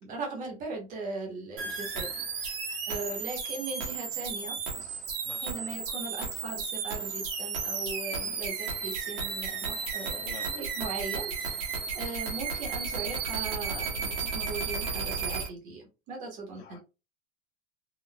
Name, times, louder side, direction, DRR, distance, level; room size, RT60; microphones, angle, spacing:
voice 1, 0.0-5.1 5.4-16.8, right 3 dB, 25° right, 1.1 m, -39 dB
sound 1, 1.6-15.5, right 5 dB, 55° right, 1.3 m, -34 dB
voice 2, 10.2-10.5 16.6-16.8, left 7 dB, 80° left, 0.7 m, -46 dB
3.9 x 2.3 x 2.2 m
supercardioid pair, 165°, 34 cm